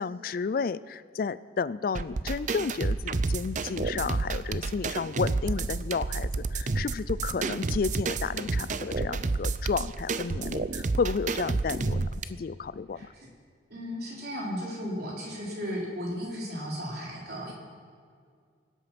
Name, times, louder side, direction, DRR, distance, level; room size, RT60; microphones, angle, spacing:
voice 1, 0.0-13.1, left 5 dB, 50° left, 17 dB, 0.4 m, -32 dB
sound 1, 2.0-12.2, right 3 dB, 45° right, 0.5 m, -30 dB
voice 2, 13.7-17.5, equal, 60° right, -3 dB, 3.8 m, -35 dB
24.5 x 8.2 x 6.0 m, 2.1 s
head